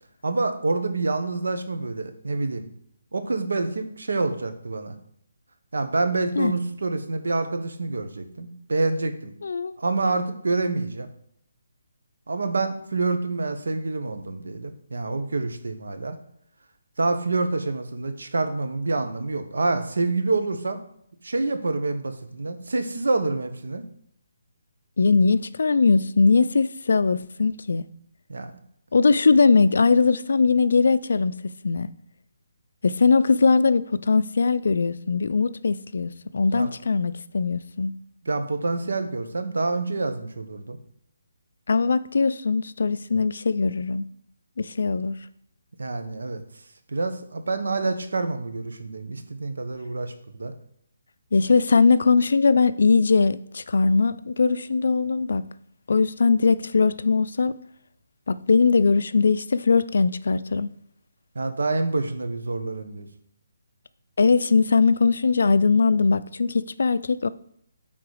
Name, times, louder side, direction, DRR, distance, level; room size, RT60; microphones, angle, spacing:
voice 1, 0.2-2.7 3.1-4.9 5.7-9.4 9.8-11.1 12.3-16.2 17.0-20.8 21.2-23.8 28.3-28.6 36.5-36.7 38.2-40.8 45.8-46.4 46.9-50.5 61.3-63.1, right 3 dB, 90° right, 8 dB, 1.1 m, -27 dB
voice 2, 9.4-9.8 25.0-27.8 28.9-31.9 32.8-37.9 41.7-44.1 44.6-45.2 51.3-55.4 55.9-57.5 58.3-60.7 64.2-67.3, left 4 dB, 65° left, 15 dB, 0.4 m, -20 dB
8.6 x 3.9 x 4.9 m, 0.71 s
hypercardioid pair, 175°, 0 cm